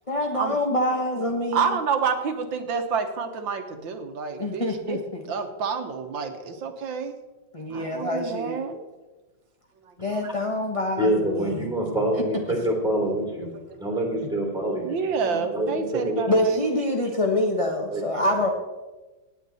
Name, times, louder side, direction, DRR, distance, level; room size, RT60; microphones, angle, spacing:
voice 1, 0.1-1.8 4.4-5.2 7.5-8.6 10.0-11.7 12.1-12.2 16.3-18.5, left 1 dB, 20° left, 0 dB, 1.0 m, -26 dB
voice 2, 1.5-5.0 5.3-7.1 7.7-8.8 13.5-13.6 14.8-16.6, right 5 dB, 80° right, 6 dB, 1.8 m, -28 dB
voice 3, 11.0-13.5 13.8-16.3 17.9-18.3, right 1 dB, ahead, 0 dB, 3.3 m, -26 dB
18.0 x 9.1 x 4.1 m, 1.2 s
omnidirectional pair, 2.1 m